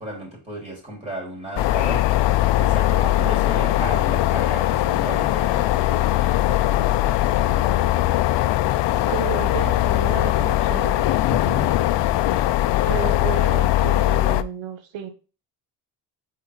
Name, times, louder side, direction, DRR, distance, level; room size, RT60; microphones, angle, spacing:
voice 1, 0.0-2.0 2.6-8.1 11.3-11.8, right 1 dB, 15° right, 4.1 m, -35 dB
sound 1, 1.6-14.4, left 14 dB, 65° left, 0.6 m, -20 dB
voice 2, 9.1-11.0 12.9-15.1, right 8 dB, 65° right, 1.3 m, -32 dB
5.4 x 4.6 x 4.9 m
supercardioid pair, 65°, 48 cm